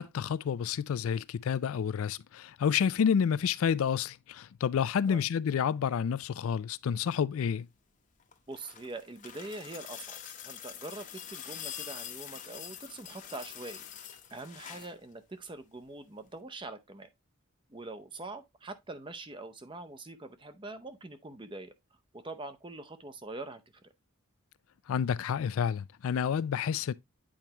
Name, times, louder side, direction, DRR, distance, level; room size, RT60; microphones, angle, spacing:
voice 1, 0.0-7.7 24.9-26.9, left 7 dB, 75° left, 0.3 m, -29 dB
sound 1, 8.2-15.0 16.3-16.4, left 9 dB, 35° left, 0.8 m, -45 dB
voice 2, 8.5-13.9 14.3-17.1 17.7-21.7 22.1-23.8, right 2 dB, 20° right, 0.6 m, -44 dB
8.8 x 4.6 x 2.8 m
head